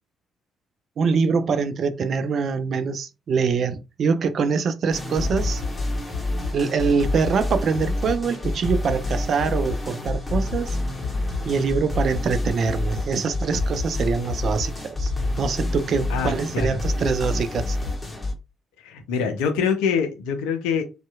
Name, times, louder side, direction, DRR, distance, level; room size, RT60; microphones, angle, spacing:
voice 1, 1.0-5.6 6.5-10.8 11.5-15.1 15.4-17.8, right 5 dB, 50° right, 0.3 m, -24 dB
sound 1, 4.9-18.3, left 2 dB, 15° left, 1.0 m, -27 dB
voice 2, 16.1-16.8 18.8-20.8, left 6 dB, 70° left, 0.5 m, -24 dB
2.7 x 2.4 x 2.2 m
figure-of-eight pair, 45°, 0 cm